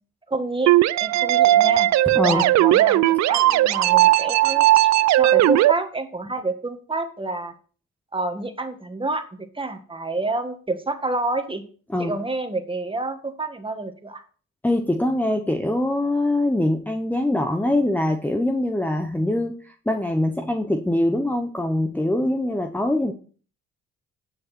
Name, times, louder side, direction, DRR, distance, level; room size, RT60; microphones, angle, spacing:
voice 1, 0.3-0.7 1.0-1.9 2.3-4.7 5.2-7.5 8.1-11.6 12.0-14.2, right 2 dB, 15° right, 6 dB, 1.7 m, -28 dB
sound 1, 0.7-5.7, right 14 dB, 65° right, 0.5 m, -17 dB
voice 2, 2.1-2.5 11.9-12.1 14.6-23.1, left 1 dB, 5° left, 5 dB, 0.9 m, -23 dB
9.8 x 7.2 x 4.3 m, 0.41 s
cardioid pair, 90°, 30 cm